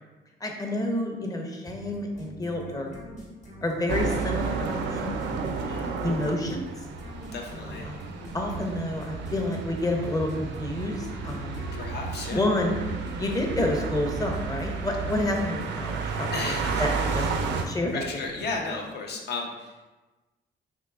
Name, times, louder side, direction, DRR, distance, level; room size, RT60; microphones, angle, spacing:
voice 1, 0.4-2.9 3.6-5.1 5.4-6.7 7.5-8.0 8.3-11.6 12.3-12.8 13.1-18.0, left 1 dB, 20° left, 1 dB, 0.6 m, -29 dB
sound 1, 1.7-19.1, equal, 40° left, 1.0 m, -44 dB
sound 2, 3.9-17.6, right 5 dB, 65° right, 0.4 m, -32 dB
voice 2, 5.6-6.0 7.3-7.9 11.7-12.4 16.3-16.8 17.1-17.3 17.9-19.7, left 3 dB, 55° left, 1 dB, 0.6 m, -34 dB
3.7 x 2.9 x 2.3 m, 1.2 s
cardioid pair, 90°, 20 cm